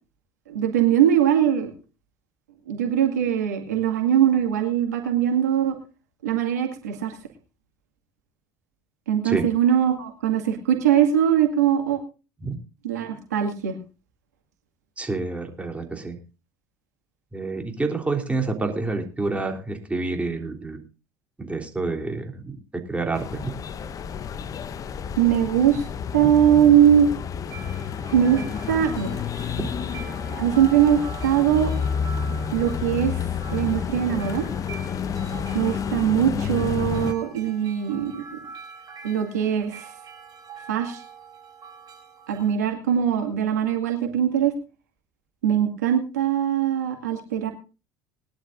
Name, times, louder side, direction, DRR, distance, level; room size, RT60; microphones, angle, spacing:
voice 1, 0.5-1.7 2.7-5.8 6.2-7.2 9.1-12.0 12.8-13.8 25.2-25.9 26.1-27.1 28.1-28.4 28.7-29.2 30.4-31.7 32.5-33.2 33.5-34.5 35.5-38.4 39.0-39.9 40.7-41.0 42.3-44.5 45.4-47.5, right 9 dB, 85° right, 4 dB, 2.2 m, -21 dB
voice 2, 15.0-16.2 17.3-20.8 21.4-22.6 22.9-23.5 29.6-29.7, right 3 dB, 15° right, 3 dB, 3.5 m, -28 dB
sound 1, 23.1-37.1, left 7 dB, 40° left, 0.9 m, -30 dB
sound 2, 27.5-42.6, right 6 dB, 45° right, 5.6 m, -44 dB
20.5 x 11.5 x 2.6 m, 0.32 s
hypercardioid pair, 65°, 9 cm